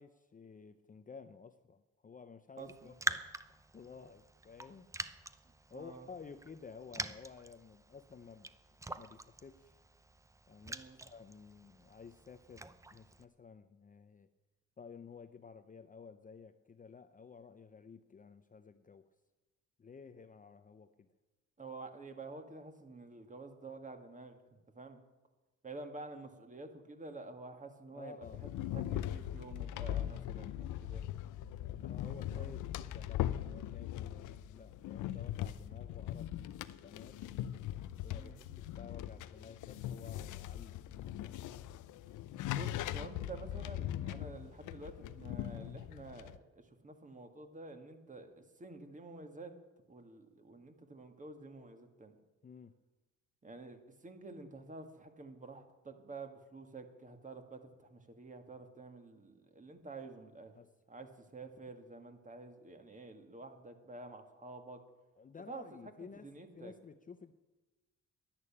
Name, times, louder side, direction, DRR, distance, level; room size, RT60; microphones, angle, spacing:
voice 1, 0.0-3.4 3.7-4.9 5.7-8.5 8.8-9.8 10.5-14.3 14.8-19.1 19.8-21.1 27.9-28.7 31.8-37.2 38.0-41.7 52.4-52.8 60.5-60.7 65.2-67.3, left 5 dB, 25° left, 10 dB, 0.6 m, -53 dB
Raindrop, 2.6-13.2, right 2 dB, 10° right, 0.6 m, -45 dB
voice 2, 2.6-2.9 5.5-6.1 10.6-11.0 21.6-25.0 25.6-28.2 28.6-31.0 32.3-32.5 38.1-38.4 42.5-49.5 49.9-52.2 53.4-60.5 60.9-64.8 65.5-66.7, right 3 dB, 25° right, 6 dB, 1.9 m, -50 dB
sound 1, 28.2-46.4, left 12 dB, 80° left, 0.6 m, -40 dB
11.0 x 10.5 x 8.6 m, 1.2 s
cardioid pair, 90°, 30 cm